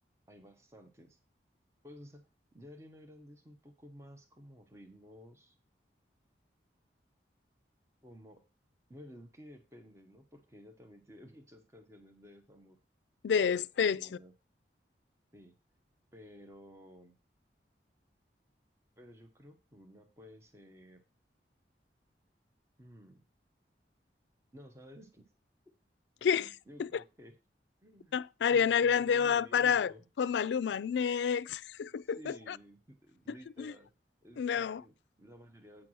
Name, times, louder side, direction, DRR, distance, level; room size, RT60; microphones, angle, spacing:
voice 1, 0.3-1.2 1.8-5.5 8.0-8.4 8.9-12.8 13.4-14.3 15.3-15.6 16.1-17.1 19.0-21.0 22.8-23.2 24.5-25.3 26.3-27.3 27.8-28.2 28.5-30.1 32.0-33.9 34.2-35.9, equal, 15° right, 0.8 m, -54 dB
voice 2, 13.2-14.1 26.2-26.5 26.8-27.0 28.1-29.9 30.2-32.6 33.3-33.7 34.4-34.8, left 7 dB, 80° left, 0.3 m, -29 dB
8.7 x 4.5 x 6.2 m
head